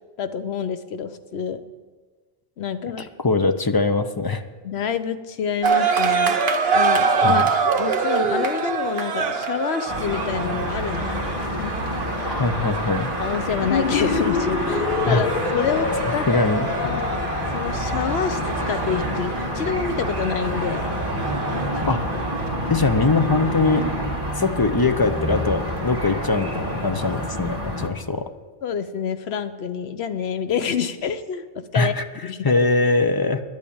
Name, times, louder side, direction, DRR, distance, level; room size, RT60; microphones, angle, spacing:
voice 1, 0.2-1.6 2.6-3.0 4.6-6.4 6.7-7.4 7.8-11.7 13.2-15.9 16.1-16.3 16.8-17.1 17.5-21.0 21.7-21.8 28.6-31.4 31.7-31.9 32.2-32.4, left 7 dB, 80° left, 10 dB, 1.0 m, -27 dB
voice 2, 3.0-4.4 7.2-7.5 12.3-13.1 15.0-15.2 16.3-17.0 21.8-22.0 22.7-23.9 24.4-28.3 31.7-32.0 32.4-33.4, left 3 dB, 25° left, 8 dB, 0.5 m, -22 dB
sound 1, 5.6-22.5, right 5 dB, 75° right, 1.2 m, -26 dB
sound 2, 9.9-27.9, equal, 25° right, 2.0 m, -28 dB
sound 3, 13.5-18.3, left 5 dB, 55° left, 1.2 m, -27 dB
11.0 x 8.6 x 8.6 m, 1.4 s
omnidirectional pair, 1.1 m